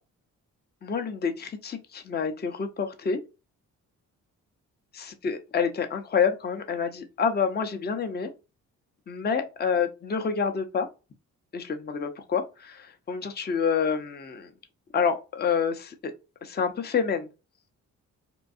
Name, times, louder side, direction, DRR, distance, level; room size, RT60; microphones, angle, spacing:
voice 1, 0.8-3.2 4.9-8.3 9.1-10.9 11.5-14.5 14.9-16.1 16.4-17.3, left 6 dB, 25° left, 0.6 m, -28 dB
2.6 x 2.2 x 2.5 m
hypercardioid pair, 45°, 42 cm